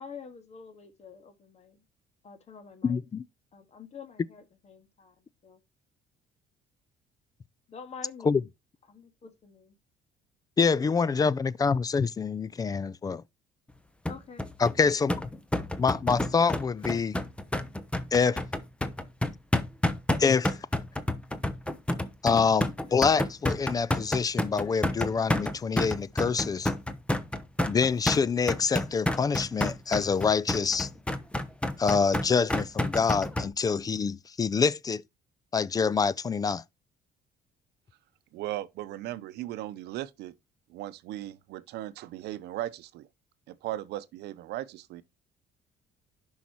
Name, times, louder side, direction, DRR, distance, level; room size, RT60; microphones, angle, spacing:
voice 1, 0.0-1.8 2.2-3.0 3.5-5.1 5.4-5.6 7.7-8.5 8.9-9.8 14.1-14.5, left 6 dB, 40° left, 1.8 m, -47 dB
voice 2, 2.8-3.2 8.2-8.4 10.6-13.2 14.6-15.1 15.8-17.1 18.1-18.4 20.2-20.6 22.2-26.7 27.7-30.9 31.8-35.0 35.5-36.6, left 5 dB, 20° left, 0.3 m, -26 dB
sound 1, 14.1-33.5, left 1 dB, 5° left, 0.8 m, -29 dB
voice 3, 38.3-40.3 40.7-43.1 43.5-45.0, right 14 dB, 80° right, 0.7 m, -37 dB
10.5 x 5.6 x 3.0 m
cardioid pair, 110°, 17 cm